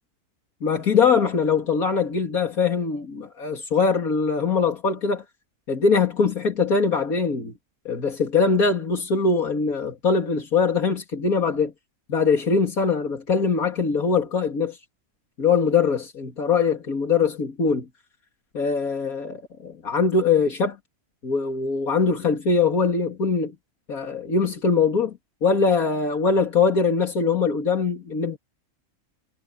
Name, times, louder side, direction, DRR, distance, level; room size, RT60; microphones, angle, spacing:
voice 1, 0.6-5.2 5.7-7.5 7.8-11.7 12.1-14.8 15.4-17.9 18.5-20.8 21.2-23.5 23.9-28.4, left 5 dB, 85° left, 3.1 m, -22 dB
omnidirectional pair, 1.5 m